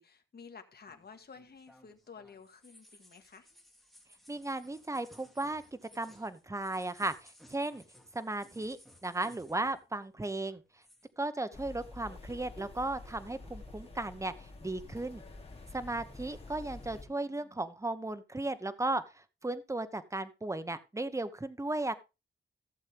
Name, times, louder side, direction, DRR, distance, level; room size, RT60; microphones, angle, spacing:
voice 1, 0.0-3.5 11.5-11.6 17.1-17.6, left 5 dB, 55° left, 6 dB, 1.7 m, -53 dB
sound 1, 0.9-10.0 10.2-11.1, left 1 dB, ahead, 2.4 m, -60 dB
voice 2, 4.3-5.6 5.9-7.8 8.1-10.6 11.2-15.2 15.7-21.9, right 2 dB, 15° right, 12 dB, 1.0 m, -36 dB
sound 2, 11.5-17.0, left 2 dB, 30° left, 2.9 m, -48 dB
15.0 x 7.4 x 3.5 m, 0.28 s
wide cardioid pair, 95°, 20 cm